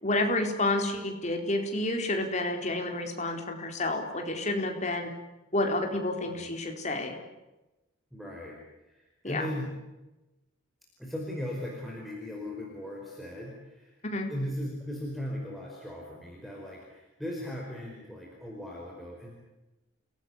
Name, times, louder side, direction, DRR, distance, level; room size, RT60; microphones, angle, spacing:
voice 1, 0.0-5.1 5.5-7.2 9.2-9.5 14.0-14.3, left 2 dB, 35° left, 4 dB, 4.2 m, -29 dB
voice 2, 8.1-8.6 8.8-9.7 11.0-13.9 14.3-19.3, left 1 dB, ahead, -2 dB, 5.0 m, -38 dB
29.0 x 18.5 x 9.9 m, 1.0 s
head